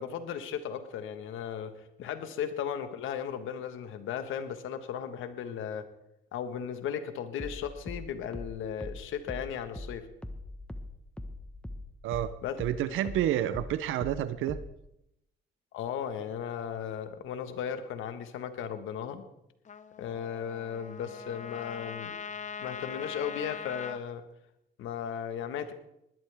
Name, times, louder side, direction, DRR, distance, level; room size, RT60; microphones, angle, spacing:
voice 1, 0.0-1.7 2.0-5.8 6.3-10.0 12.4-12.6 15.7-19.2 20.0-22.1 22.6-24.2 24.8-25.7, left 8 dB, 85° left, 9 dB, 1.5 m, -36 dB
sound 1, 7.4-12.3 12.6-14.8, left 1 dB, 5° left, 1.3 m, -41 dB
voice 2, 12.6-14.6, right 12 dB, 85° right, 14 dB, 0.7 m, -29 dB
Trumpet, 19.6-24.0, left 6 dB, 40° left, 0.8 m, -41 dB
20.0 x 12.5 x 3.5 m, 0.82 s
cardioid pair, 90°, 20 cm